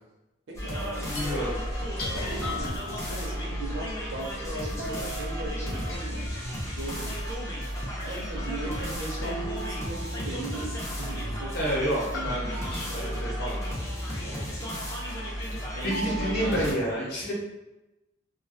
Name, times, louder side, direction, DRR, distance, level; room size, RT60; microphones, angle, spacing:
sound 1, 0.5-16.7, equal, 15° left, 0.3 m, -33 dB
voice 1, 0.5-1.5 2.0-6.3 6.7-7.2 8.0-11.8 15.7-16.8, right 2 dB, 70° right, -1 dB, 0.6 m, -38 dB
sound 2, 1.0-16.5, left 1 dB, 85° left, 0.5 m, -41 dB
voice 2, 1.1-1.6 11.5-14.5 14.9-15.3 15.8-17.3, equal, 50° left, -4 dB, 0.7 m, -31 dB
2.3 x 2.2 x 2.5 m, 0.99 s
head